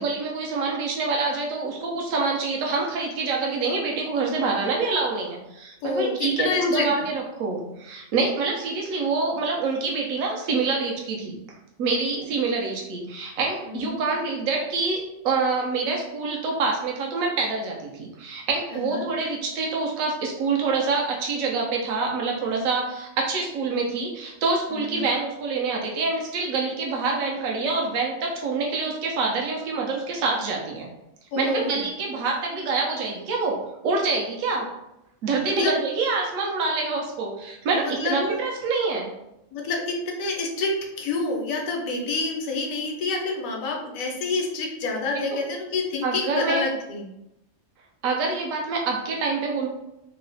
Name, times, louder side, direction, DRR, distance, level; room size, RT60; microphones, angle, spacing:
voice 1, 0.0-11.4 11.8-30.9 31.4-33.6 33.8-34.7 35.2-39.1 45.1-45.2 46.0-46.6 48.0-49.7, right 4 dB, 85° right, 0 dB, 1.0 m, -26 dB
voice 2, 5.8-6.9 13.7-14.0 18.7-19.1 24.7-25.0 31.3-31.8 35.4-35.8 37.7-38.4 39.5-47.1, left 3 dB, 85° left, 0 dB, 1.1 m, -28 dB
3.1 x 2.0 x 3.8 m, 0.87 s
omnidirectional pair, 1.4 m